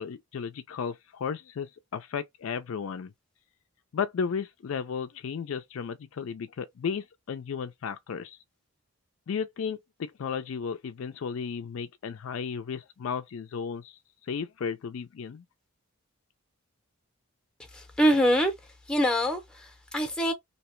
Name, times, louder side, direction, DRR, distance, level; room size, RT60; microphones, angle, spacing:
voice 1, 0.0-3.1 3.9-8.4 9.3-14.0 14.3-15.4, left 6 dB, 65° left, 0.4 m, -34 dB
voice 2, 17.7-20.3, equal, 5° left, 0.6 m, -25 dB
2.8 x 2.1 x 3.0 m
head